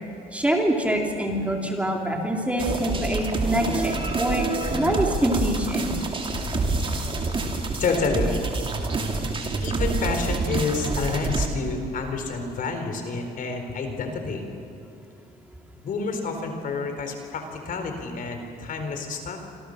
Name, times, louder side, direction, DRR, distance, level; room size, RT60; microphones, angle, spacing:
voice 1, 0.3-4.5 4.7-5.9, equal, 10° right, 1 dB, 3.4 m, -25 dB
sound 1, 2.6-11.5, right 3 dB, 30° right, 3.1 m, -27 dB
voice 2, 7.8-8.4 9.6-14.5 15.8-19.4, left 4 dB, 55° left, 5 dB, 4.1 m, -29 dB
26.5 x 26.5 x 6.6 m, 2.6 s
cardioid pair, 110°, 17 cm